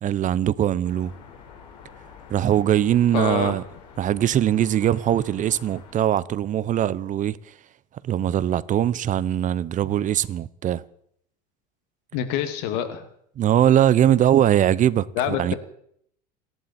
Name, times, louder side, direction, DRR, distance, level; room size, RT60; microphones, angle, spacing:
voice 1, 0.0-1.1 2.3-3.6 4.0-7.4 8.0-10.8 13.4-15.5, right 11 dB, 40° right, 0.8 m, -21 dB
sound 1, 0.8-5.9, left 6 dB, 85° left, 4.6 m, -47 dB
voice 2, 3.1-3.6 12.1-13.0 15.2-15.6, left 10 dB, 70° left, 2.2 m, -26 dB
28.0 x 11.0 x 4.3 m
supercardioid pair, 105°, 21 cm